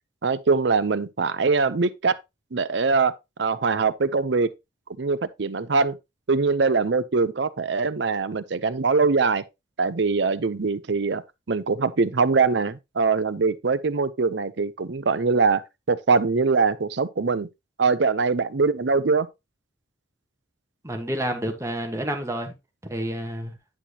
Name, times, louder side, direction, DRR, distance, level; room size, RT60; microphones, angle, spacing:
voice 1, 0.2-2.1 2.5-3.1 3.4-4.5 5.0-6.0 6.3-9.4 9.8-11.2 11.5-15.6 15.9-17.5 17.8-19.3, right 4 dB, 60° right, 0.6 m, -22 dB
voice 2, 20.8-22.5 22.8-23.5, equal, 15° right, 1.4 m, -29 dB
9.8 x 5.9 x 2.9 m
head